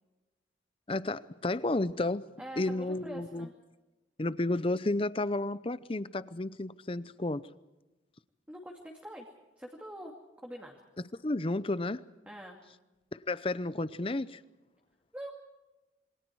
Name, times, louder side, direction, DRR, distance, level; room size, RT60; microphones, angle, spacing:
voice 1, 0.9-3.5 4.2-7.5 11.1-12.0 13.1-14.4, left 2 dB, 30° left, 0.7 m, -32 dB
voice 2, 2.4-3.5 8.5-9.3 9.6-10.8 12.3-12.6 15.1-15.3, equal, 10° right, 2.5 m, -44 dB
27.5 x 25.0 x 4.7 m
head